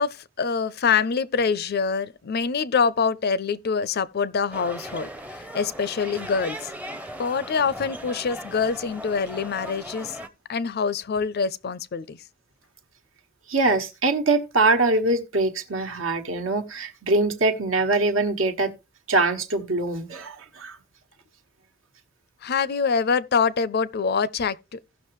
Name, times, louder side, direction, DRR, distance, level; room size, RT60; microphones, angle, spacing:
voice 1, 0.0-6.7 7.2-10.2 10.5-12.2 22.4-24.8, left 5 dB, 50° left, 0.5 m, -25 dB
sound 1, 4.5-10.3, equal, 5° right, 0.6 m, -38 dB
voice 2, 13.5-18.7 19.1-20.8, right 2 dB, 70° right, 1.3 m, -23 dB
16.5 x 6.0 x 3.1 m
head